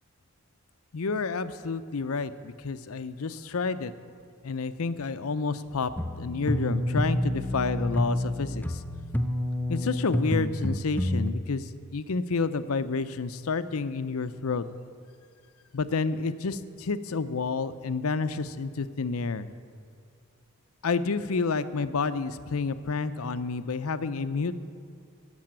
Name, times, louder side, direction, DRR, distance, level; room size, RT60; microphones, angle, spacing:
voice 1, 0.9-3.9 4.4-5.9 6.2-8.8 9.7-14.6 15.7-19.5 20.8-24.6, left 4 dB, 70° left, 13 dB, 0.6 m, -29 dB
sound 1, 6.0-11.3, left 1 dB, 10° left, 0.5 m, -28 dB
13.5 x 7.7 x 8.9 m, 2.3 s
head